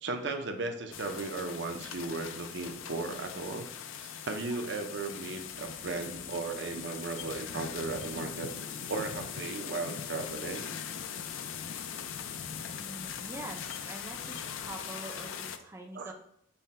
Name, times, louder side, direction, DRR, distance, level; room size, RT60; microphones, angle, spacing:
voice 1, 0.0-3.7 4.0-8.6 8.9-10.7 15.9-16.1, right 3 dB, 60° right, 5 dB, 0.6 m, -36 dB
sound 1, 0.9-15.6, left 8 dB, 75° left, 0.4 m, -40 dB
voice 2, 12.8-16.1, right 1 dB, 15° right, 1 dB, 0.4 m, -44 dB
5.5 x 2.2 x 4.2 m, 0.71 s
head